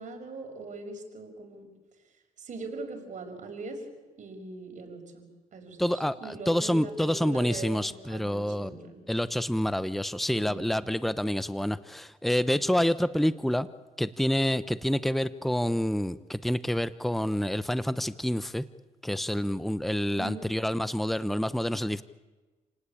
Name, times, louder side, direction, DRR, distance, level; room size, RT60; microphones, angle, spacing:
voice 1, 0.0-1.7 2.4-3.8 4.2-5.3 5.5-9.0 10.4-10.6 20.2-20.5, right 3 dB, 60° right, 4 dB, 5.9 m, -41 dB
voice 2, 5.8-8.8 9.1-13.7 14.0-18.6 19.0-22.0, equal, ahead, 14 dB, 0.9 m, -28 dB
29.5 x 18.5 x 8.7 m, 1.2 s
cardioid pair, 80°, 14 cm